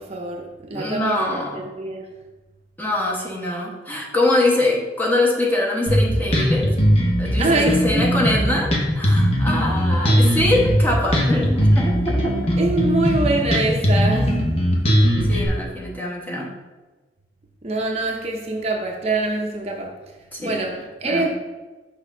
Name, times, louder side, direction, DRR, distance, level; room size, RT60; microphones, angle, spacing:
voice 1, 0.0-2.1 7.4-8.1 12.6-14.4 17.6-20.0 20.4-21.3, right 2 dB, 35° right, 0 dB, 0.8 m, -24 dB
voice 2, 0.7-1.6 2.8-6.8 7.2-12.5 15.3-16.5 20.3-20.6 21.0-21.3, left 2 dB, 10° left, -3 dB, 1.2 m, -23 dB
Bass guitar, 5.9-15.5, equal, 35° left, 1.1 m, -19 dB
6.3 x 3.6 x 5.5 m, 1.2 s
head